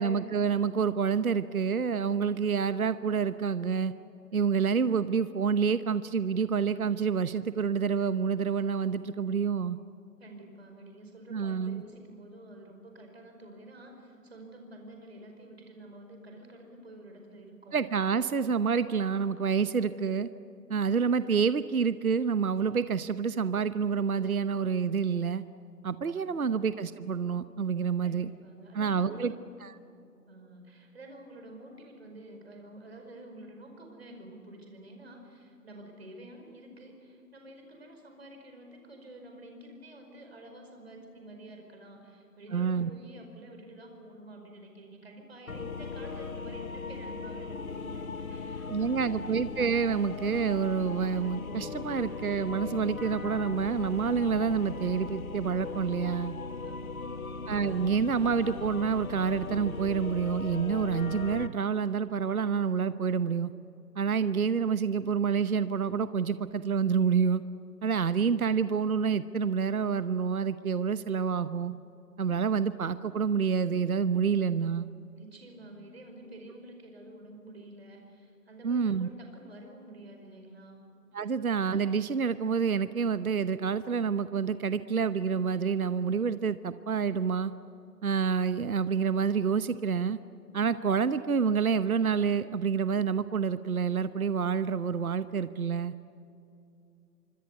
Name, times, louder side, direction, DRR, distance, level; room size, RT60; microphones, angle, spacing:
voice 1, 0.0-3.9 4.3-9.8 11.3-11.8 17.7-20.3 20.7-25.4 25.8-28.3 28.7-29.3 29.6-29.7 42.5-42.9 48.7-56.3 57.5-63.5 64.0-67.4 67.8-71.7 72.2-74.9 78.6-79.1 81.1-87.5 88.0-90.2 90.5-95.9, right 6 dB, 60° right, 13 dB, 1.0 m, -28 dB
voice 2, 10.2-17.8 26.1-26.6 28.0-29.4 30.3-49.2 56.6-57.4 75.2-80.8, right 1 dB, 40° right, 3 dB, 5.1 m, -49 dB
sound 1, 45.5-61.5, left 4 dB, 55° left, 1.3 m, -38 dB
sound 2, 49.6-52.6, right 1 dB, 20° right, 1.7 m, -50 dB
26.0 x 25.0 x 8.2 m, 2.7 s
hypercardioid pair, 180°, 49 cm